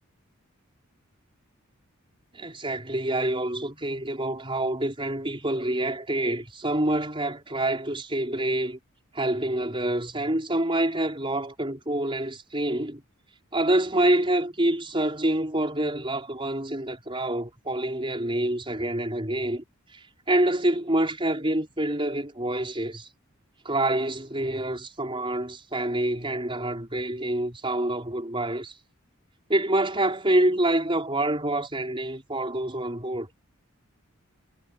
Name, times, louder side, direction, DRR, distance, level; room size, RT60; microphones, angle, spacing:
voice 1, 2.3-8.8 9.1-13.0 13.5-19.6 19.9-23.1 23.6-28.7 29.5-33.3, right 1 dB, 25° right, 5.1 m, -27 dB
head